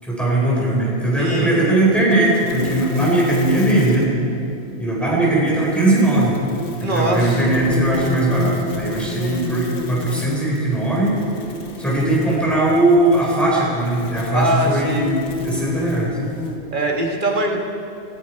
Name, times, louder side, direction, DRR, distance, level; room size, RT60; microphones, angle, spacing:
voice 1, 0.0-4.1 4.8-6.3 6.8-11.2 11.8-16.2, right 1 dB, ahead, -5 dB, 4.6 m, -19 dB
voice 2, 1.2-1.8 6.8-7.5 14.3-15.1 16.7-17.6, right 1 dB, 50° right, 0 dB, 1.9 m, -22 dB
sound 1, 1.9-4.2 5.5-16.6, left 2 dB, 90° left, 1.6 m, -30 dB
20.0 x 13.5 x 4.7 m, 2.6 s
omnidirectional pair, 1.1 m